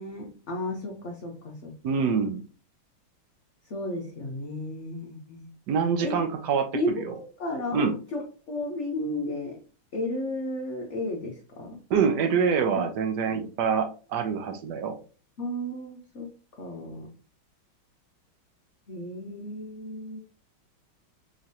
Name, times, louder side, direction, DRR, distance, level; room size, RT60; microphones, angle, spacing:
voice 1, 0.0-1.7 2.0-2.1 3.7-5.5 6.0-6.2 6.7-9.6 9.9-11.8 12.7-12.8 13.3-13.5 15.4-16.3 16.6-17.1 18.9-20.2, left 1 dB, 60° left, -1 dB, 0.7 m, -33 dB
voice 2, 1.8-2.4 5.7-6.7 6.9-7.1 7.7-8.0 11.9-15.0, right 6 dB, 70° right, 6 dB, 1.1 m, -25 dB
3.7 x 3.2 x 2.7 m, 0.36 s
omnidirectional pair, 2.3 m